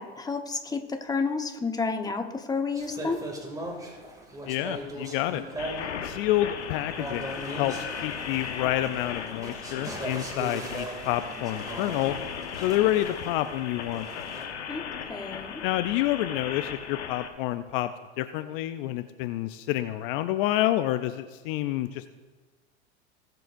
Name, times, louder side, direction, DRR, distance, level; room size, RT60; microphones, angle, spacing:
voice 1, 0.0-3.2 14.7-14.8 15.1-15.6, left 4 dB, 10° left, 6 dB, 1.1 m, -30 dB
sound 1, 2.7-14.5, right 1 dB, 10° right, 2.5 m, -39 dB
voice 2, 4.5-5.4 6.0-7.7 8.0-12.1 12.6-14.3 15.6-17.9 18.2-22.1, left 14 dB, 55° left, 11 dB, 0.5 m, -28 dB
sound 2, 5.6-17.3, left 7 dB, 80° left, 1.3 m, -37 dB
20.0 x 7.7 x 2.6 m, 1.3 s
hypercardioid pair, 90°, 33 cm